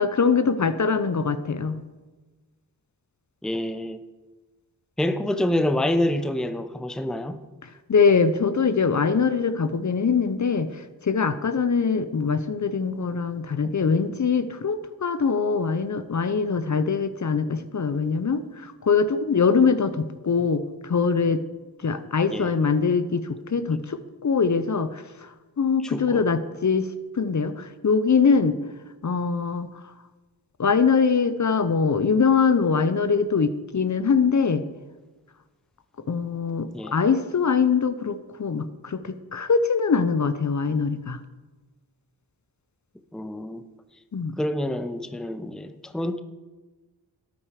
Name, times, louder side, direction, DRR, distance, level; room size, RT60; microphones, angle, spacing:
voice 1, 0.0-1.8 7.9-21.4 21.8-25.3 25.6-28.6 29.0-29.7 30.6-34.6 36.1-41.2 44.1-44.3, left 5 dB, 45° left, 0.7 m, -23 dB
voice 2, 3.4-4.0 5.0-7.4 13.6-13.7 22.3-22.5 25.8-26.2 36.7-37.0 43.1-43.6 44.4-46.2, left 1 dB, ahead, 0.7 m, -27 dB
13.0 x 8.9 x 5.0 m
cardioid pair, 60°, 40 cm